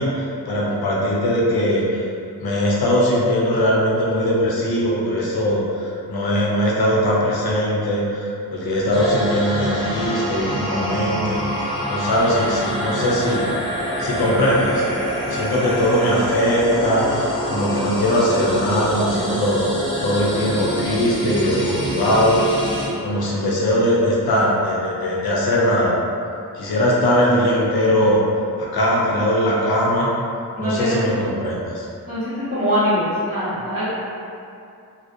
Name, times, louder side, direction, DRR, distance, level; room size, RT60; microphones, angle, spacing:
voice 1, 0.0-2.0 2.4-11.4 11.9-13.5 14.0-14.9 15.3-19.6 20.0-22.4 23.0-25.9 26.5-28.2 28.6-30.1 30.6-31.8, equal, 75° left, -5 dB, 0.6 m, -20 dB
sound 1, 8.9-22.9, equal, 15° left, 0.7 m, -26 dB
voice 2, 30.5-31.0 32.0-33.9, equal, 20° right, -13 dB, 1.2 m, -22 dB
2.5 x 2.0 x 2.5 m, 2.5 s
cardioid pair, 45°, 37 cm